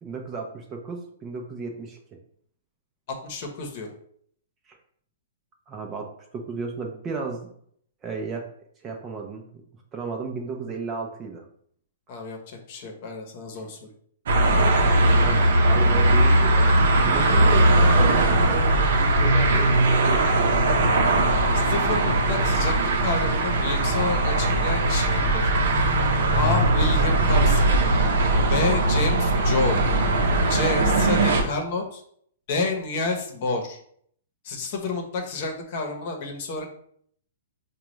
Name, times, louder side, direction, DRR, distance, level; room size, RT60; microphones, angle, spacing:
voice 1, 0.0-2.0 4.7-4.8 5.7-7.5 8.0-8.5 8.8-9.5 9.9-11.4 14.5-20.9, right 4 dB, 20° right, 2 dB, 0.6 m, -34 dB
voice 2, 3.1-3.9 12.1-13.9 17.1-17.6 21.7-25.5 26.4-27.7 28.5-29.8 30.5-32.0 32.5-33.8 34.4-36.7, left 3 dB, 50° left, 3 dB, 0.9 m, -29 dB
sound 1, 14.3-31.4, right 1 dB, 70° right, 0.7 m, -20 dB
4.9 x 2.3 x 3.1 m, 0.64 s
hypercardioid pair, 145°, 0 cm